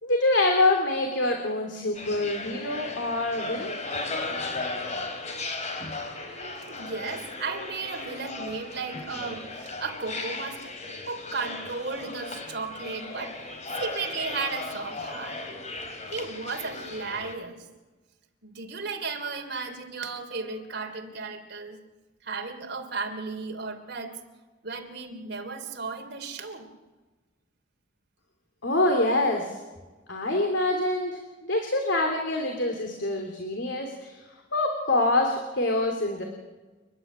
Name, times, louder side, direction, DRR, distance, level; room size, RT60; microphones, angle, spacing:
voice 1, 0.0-3.7 28.6-29.6 30.1-34.2 34.5-36.2, left 2 dB, 65° left, 3 dB, 3.1 m, -25 dB
sound 1, 1.9-17.3, left 3 dB, 35° left, 3.5 m, -36 dB
voice 2, 6.2-9.5 9.8-10.8 11.1-13.5 13.8-15.4 16.1-17.7 18.4-21.8 22.2-24.2 24.6-26.7, right 4 dB, 55° right, 4 dB, 3.2 m, -35 dB
30.0 x 11.0 x 9.5 m, 1.2 s
head